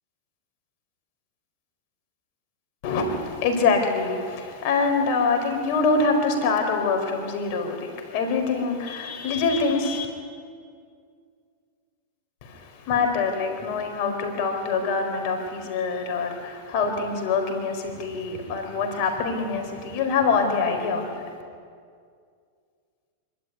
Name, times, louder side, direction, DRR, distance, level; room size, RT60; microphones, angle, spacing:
voice 1, 2.8-10.1 12.4-21.2, left 4 dB, 55° left, 5 dB, 4.5 m, -25 dB
25.0 x 13.0 x 9.6 m, 2.2 s
hypercardioid pair, 115°, 0 cm